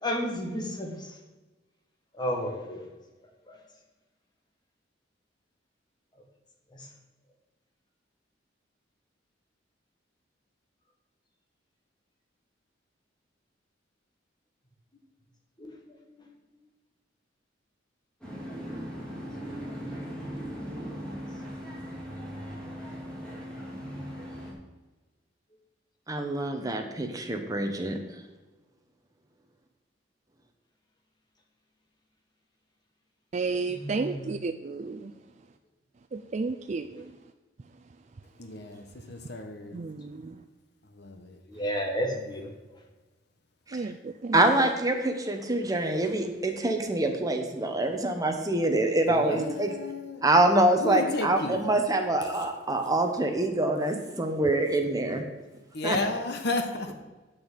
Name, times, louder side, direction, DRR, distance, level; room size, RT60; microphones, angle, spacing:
voice 1, 0.0-1.0 2.2-2.8 15.6-15.7 19.8-20.0 33.7-34.3 41.5-42.5, equal, 25° left, 2 dB, 1.6 m, -31 dB
sound 1, 18.2-24.5, equal, 5° left, 2.9 m, -38 dB
voice 2, 26.1-28.0 43.7-43.8 44.3-49.7 50.2-55.2 55.8-56.0, right 2 dB, 20° right, 4 dB, 1.1 m, -25 dB
voice 3, 33.3-35.1 36.1-37.1 39.7-40.4 43.7-44.4 49.3-49.4, right 4 dB, 40° right, 7 dB, 0.4 m, -32 dB
voice 4, 38.4-39.8 40.9-41.4 42.1-42.3 49.1-50.2 50.7-51.6 55.7-56.9, left 2 dB, 60° left, 6 dB, 1.1 m, -33 dB
8.5 x 6.7 x 7.5 m, 1.2 s
head